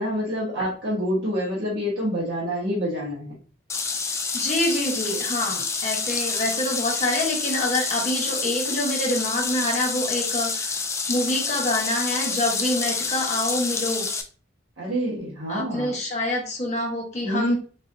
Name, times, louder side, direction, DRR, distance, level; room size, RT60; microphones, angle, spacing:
voice 1, 0.0-3.3 14.8-15.9 17.2-17.5, equal, 75° right, -7 dB, 1.2 m, -27 dB
sound 1, 3.7-14.2, left 4 dB, 15° left, 0.3 m, -28 dB
voice 2, 4.3-10.8 11.1-14.1 15.5-17.5, left 1 dB, 40° left, -1 dB, 1.1 m, -26 dB
4.0 x 2.7 x 2.5 m, 0.39 s
head